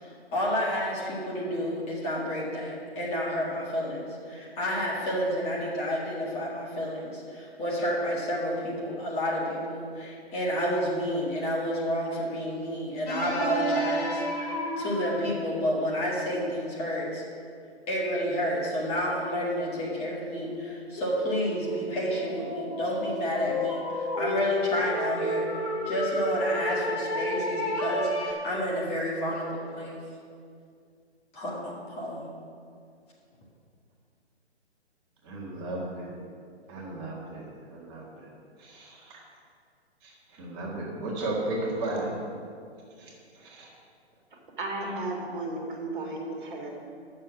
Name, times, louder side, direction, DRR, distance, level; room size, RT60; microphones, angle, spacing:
voice 1, 0.0-17.2 17.9-25.5 25.9-30.0 31.3-31.6 31.9-32.3, equal, 20° left, -5 dB, 1.9 m, -30 dB
sound 1, 13.1-16.5 18.2-18.3 18.9-28.3, left 1 dB, 35° left, 1.4 m, -32 dB
voice 2, 35.2-36.2 36.7-38.3 38.6-39.2 40.0-42.1 43.0-43.7, right 2 dB, 20° right, -3 dB, 1.7 m, -35 dB
voice 3, 44.6-46.7, right 2 dB, 50° right, 0 dB, 1.9 m, -34 dB
9.6 x 6.7 x 6.3 m, 2.3 s
figure-of-eight pair, 130°, 34 cm